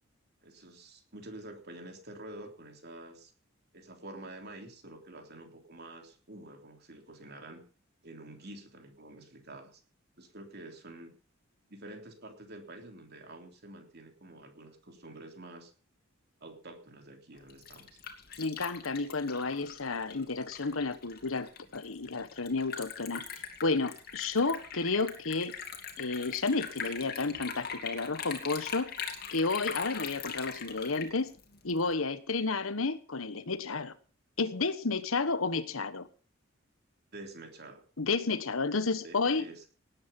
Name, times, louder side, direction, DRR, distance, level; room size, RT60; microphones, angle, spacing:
voice 1, 0.4-3.3 3.7-7.6 8.0-9.8 10.2-11.1 11.7-15.7 16.4-17.9 37.1-37.8 39.0-39.6, right 1 dB, 50° right, 4 dB, 3.4 m, -48 dB
Liquid, 17.4-31.9, left 6 dB, 50° left, 2.6 m, -41 dB
voice 2, 18.4-23.2 23.6-25.5 26.0-28.9 29.3-31.3 31.6-33.9 34.4-36.1 38.0-39.4, left 3 dB, 85° left, 13 dB, 1.2 m, -31 dB
18.0 x 9.6 x 5.4 m, 0.38 s
head